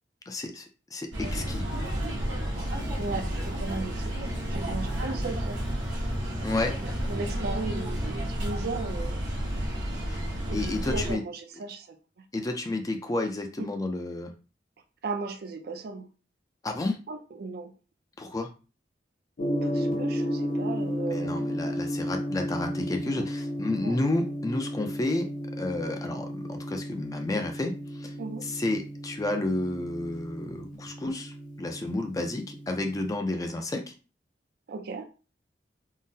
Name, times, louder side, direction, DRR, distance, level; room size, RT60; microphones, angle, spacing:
voice 1, 0.3-1.6 6.4-6.8 10.1-10.2 10.5-11.2 12.3-14.3 16.6-17.0 18.2-18.5 21.1-25.3 25.6-28.1 28.4-33.9, left 2 dB, 20° left, 5 dB, 0.4 m, -31 dB
sound 1, 1.1-11.1, equal, 85° right, 0.9 m, -31 dB
voice 2, 3.0-5.6 6.8-9.2 10.5-12.0 15.0-16.1 17.1-17.7 19.4-21.4 23.0-23.3 23.8-24.0 28.2-28.5 34.7-35.1, right 3 dB, 60° right, 7 dB, 0.4 m, -36 dB
Gong, 19.4-33.1, equal, 50° left, 0.8 m, -33 dB
3.8 x 2.0 x 2.6 m, 0.34 s
head